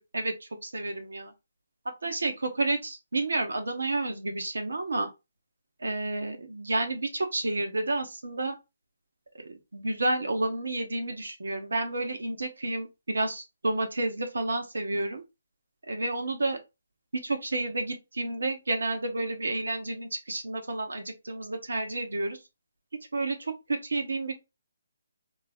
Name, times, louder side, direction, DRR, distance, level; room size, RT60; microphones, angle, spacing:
voice 1, 0.1-1.3 1.8-5.1 5.8-8.6 9.4-15.2 15.9-16.6 17.1-22.4 22.9-24.4, right 2 dB, 85° right, 1.0 m, -30 dB
3.0 x 2.3 x 4.2 m
hypercardioid pair, 155°, 0 cm